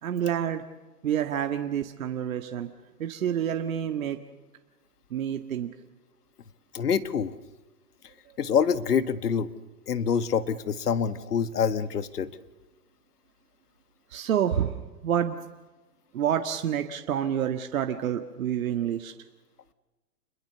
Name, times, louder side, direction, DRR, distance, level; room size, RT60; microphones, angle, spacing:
voice 1, 0.0-0.6 1.0-2.7 3.0-4.2 5.1-5.7 14.1-15.4 16.1-19.1, right 9 dB, 55° right, 6 dB, 1.8 m, -28 dB
voice 2, 6.7-7.3 8.4-9.5 9.9-12.3, left 7 dB, 70° left, 13 dB, 1.8 m, -26 dB
28.5 x 21.5 x 6.9 m, 1.2 s
hypercardioid pair, 145°, 48 cm